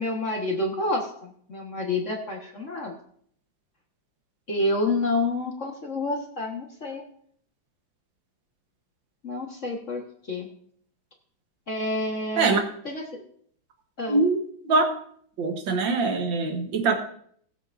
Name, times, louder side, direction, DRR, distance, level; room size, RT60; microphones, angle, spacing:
voice 1, 0.0-2.9 4.5-7.0 9.2-10.0 10.3-10.5 11.7-13.2 14.0-14.2, left 2 dB, 40° left, 0 dB, 1.7 m, -28 dB
voice 2, 15.4-17.0, right 3 dB, 70° right, 4 dB, 2.0 m, -23 dB
20.0 x 8.2 x 2.6 m, 0.62 s
omnidirectional pair, 2.2 m